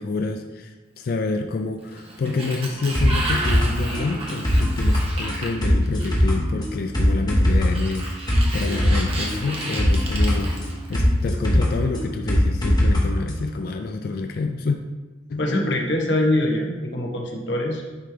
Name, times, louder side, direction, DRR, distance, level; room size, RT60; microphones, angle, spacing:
voice 1, 0.0-14.8 15.3-15.4, left 3 dB, 55° left, 6 dB, 0.3 m, -28 dB
Sliding door, 1.8-6.4 7.6-11.3, right 2 dB, 30° right, 1.1 m, -32 dB
sound 1, 2.9-13.0 13.3-13.4, equal, 25° left, 1.1 m, -21 dB
voice 2, 15.4-17.8, left 1 dB, 75° left, 0 dB, 1.1 m, -23 dB
9.8 x 3.3 x 3.3 m, 1.2 s
head